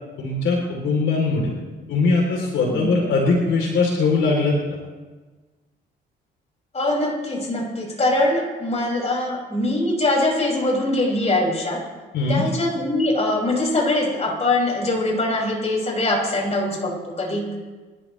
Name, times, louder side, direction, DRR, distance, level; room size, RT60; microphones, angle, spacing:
voice 1, 0.2-1.5 1.9-4.5 12.1-12.4, left 3 dB, 75° left, -1 dB, 3.2 m, -20 dB
voice 2, 2.7-3.1 6.7-11.8 12.3-17.6, left 2 dB, 35° left, -3 dB, 6.0 m, -22 dB
26.5 x 13.0 x 3.2 m, 1.3 s
cardioid pair, 90°, 20 cm